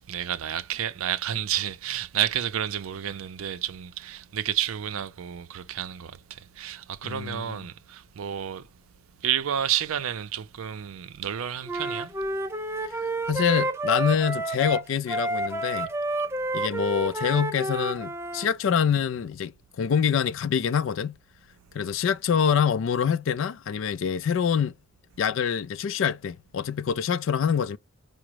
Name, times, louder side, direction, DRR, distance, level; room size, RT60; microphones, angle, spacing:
voice 1, 0.1-8.7 9.2-12.1, right 10 dB, 80° right, 0.5 m, -30 dB
voice 2, 7.0-7.6 13.3-15.9 16.5-21.2 21.7-24.7 25.2-27.8, left 7 dB, 65° left, 0.3 m, -25 dB
Wind instrument woodwind instrument, 11.7-18.5, right 2 dB, 10° right, 0.4 m, -30 dB
4.9 x 2.0 x 4.5 m
head